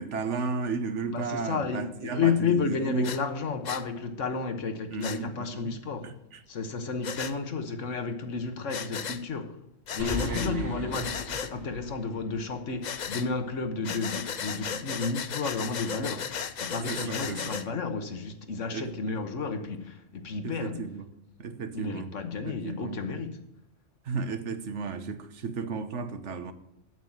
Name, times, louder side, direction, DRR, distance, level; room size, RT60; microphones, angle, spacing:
voice 1, 0.0-3.3 4.9-5.7 6.0-6.1 10.2-11.1 16.9-17.5 18.7-18.9 20.4-21.1 21.4-22.1 22.5-23.0 24.1-26.5, right 4 dB, 75° right, 1.3 m, -34 dB
voice 2, 1.1-6.1 6.5-9.6 9.9-20.9 21.7-23.4, left 5 dB, 85° left, 1.6 m, -32 dB
Breathing, 3.0-3.2 3.7-3.8 5.0-5.2 7.0-7.3 8.7-9.2 9.9-10.5 10.9-11.5 12.8-13.3 13.8-17.7, left 7 dB, 45° left, 0.6 m, -35 dB
sound 1, 10.0-13.5, left 1 dB, 10° right, 4.4 m, -39 dB
8.2 x 7.3 x 7.8 m
omnidirectional pair, 1.2 m